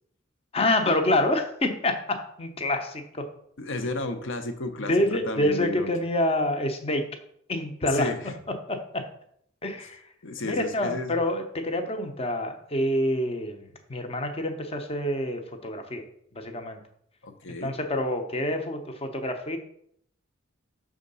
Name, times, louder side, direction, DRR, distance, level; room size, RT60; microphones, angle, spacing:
voice 1, 0.5-3.2 4.9-7.0 7.5-8.1 8.7-9.0 9.6-10.0 10.4-13.6 13.9-16.0 16.3-16.8 17.6-19.6, left 1 dB, 30° left, 6 dB, 0.7 m, -27 dB
voice 2, 3.6-5.9 7.9-8.3 9.8-9.9 10.2-11.2 17.2-17.8, left 2 dB, 65° left, 8 dB, 0.8 m, -33 dB
6.3 x 3.7 x 5.4 m, 0.69 s
head